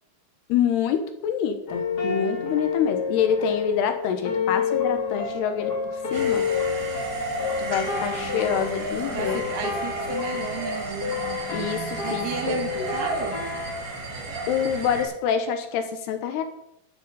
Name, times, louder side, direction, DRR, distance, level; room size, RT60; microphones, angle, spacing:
voice 1, 0.5-5.7 6.1-6.5 7.6-9.4 11.5-12.3 12.7-12.9 14.5-16.4, left 8 dB, 75° left, 8 dB, 3.2 m, -26 dB
sound 1, 1.7-13.7, left 5 dB, 40° left, 1.4 m, -29 dB
sound 2, 6.1-15.0, right 3 dB, 85° right, 5.0 m, -34 dB
voice 2, 9.1-11.4 12.0-13.5, right 7 dB, 70° right, 5 dB, 2.4 m, -33 dB
13.0 x 7.6 x 7.0 m, 0.77 s
omnidirectional pair, 4.9 m